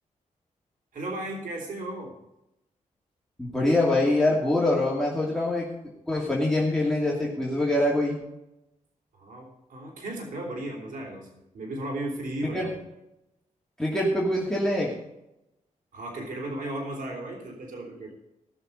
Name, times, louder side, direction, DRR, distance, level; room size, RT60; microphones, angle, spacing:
voice 1, 0.9-2.1 9.1-12.8 15.9-18.1, right 1 dB, 80° right, -1 dB, 3.4 m, -35 dB
voice 2, 3.4-5.7 6.1-8.2 12.5-12.7 13.8-14.9, left 1 dB, 5° left, -5 dB, 2.6 m, -24 dB
17.5 x 6.5 x 5.4 m, 0.90 s
wide cardioid pair, 115°, 13 cm